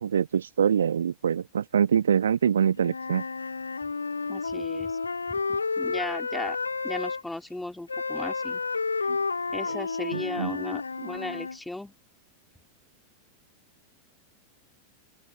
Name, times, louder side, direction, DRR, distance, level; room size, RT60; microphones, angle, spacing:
voice 1, 0.0-3.2 9.1-9.2 10.1-10.5, right 8 dB, 65° right, 1.5 m, -24 dB
Wind instrument woodwind instrument, 2.8-7.2 7.9-11.6, left 4 dB, 75° left, 3.2 m, -31 dB
voice 2, 4.3-5.0 5.3-6.6 6.8-8.6 9.5-11.9, left 1 dB, 5° left, 3.2 m, -36 dB
open air
figure-of-eight pair, 90°, 0 cm